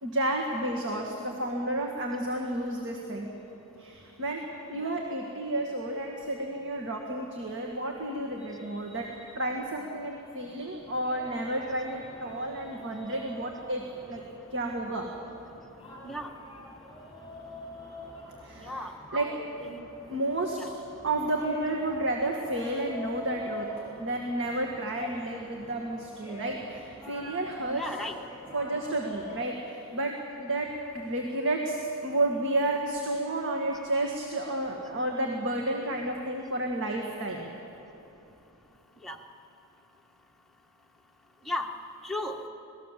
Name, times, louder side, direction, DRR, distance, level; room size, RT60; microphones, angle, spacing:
voice 1, 0.0-3.3 3.8-14.2 14.5-15.1 18.4-18.8 19.1-19.3 20.1-20.6 21.0-23.7 24.0-27.8 28.5-37.5, right 1 dB, 60° right, 1 dB, 2.0 m, -31 dB
sound 1, 10.7-29.4, left 1 dB, 25° left, 7.5 m, -46 dB
voice 2, 18.6-19.9 20.6-20.7 27.7-28.1 39.0-39.2 41.5-41.7 42.0-42.4, left 1 dB, ahead, 1 dB, 1.5 m, -35 dB
26.5 x 19.0 x 7.7 m, 2.9 s
head